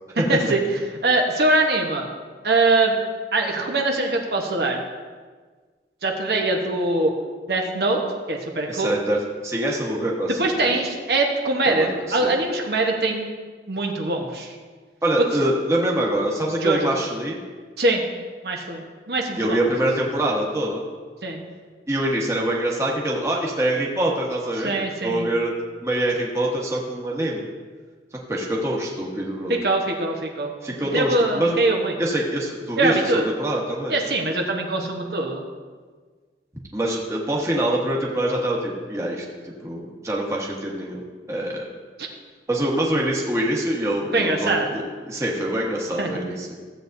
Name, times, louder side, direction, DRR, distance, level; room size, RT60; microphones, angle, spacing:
voice 1, 0.3-0.6 1.0-2.1 2.4-2.9 3.3-4.8 6.0-7.1 7.5-8.0 8.3-9.0 10.4-13.3 13.7-14.5 16.5-16.9 17.8-18.0 18.4-19.6 21.2-21.4 24.6-25.2 29.5-30.5 30.9-31.9 32.8-33.2 33.9-35.4 42.0-42.1 44.1-44.7 46.0-46.1, right 2 dB, 60° right, 1 dB, 1.1 m, -22 dB
voice 2, 8.7-10.7 11.6-12.4 15.0-17.4 19.4-20.8 21.9-25.5 25.8-27.5 28.3-29.6 30.6-31.6 32.0-34.0 36.7-41.0 41.3-41.6 42.5-46.5, right 1 dB, 15° right, -3 dB, 1.2 m, -25 dB
15.5 x 8.2 x 2.6 m, 1.5 s
head